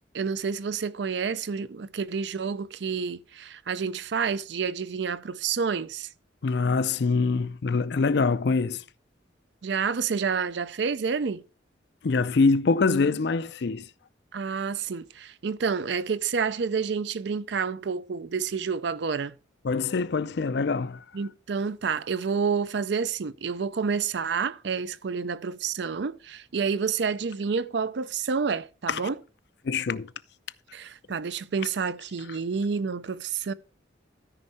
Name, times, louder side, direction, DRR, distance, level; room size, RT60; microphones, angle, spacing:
voice 1, 0.1-6.1 9.6-11.4 14.3-19.4 21.1-29.2 30.7-33.5, right 5 dB, 65° right, 0.5 m, -29 dB
voice 2, 6.4-8.8 12.0-13.9 19.6-21.0 28.9-29.0 29.6-30.1, left 4 dB, 60° left, 0.5 m, -24 dB
13.0 x 5.4 x 4.2 m
head